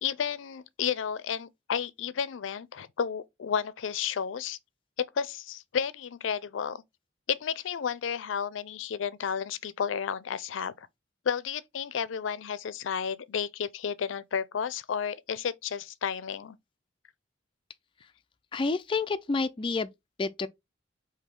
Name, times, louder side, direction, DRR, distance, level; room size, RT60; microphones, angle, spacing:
voice 1, 0.0-4.6 5.1-6.8 7.3-10.9 11.2-16.6, left 7 dB, 90° left, 0.4 m, -32 dB
voice 2, 18.5-19.9 20.2-20.5, left 3 dB, 25° left, 0.3 m, -29 dB
5.0 x 2.7 x 3.6 m
head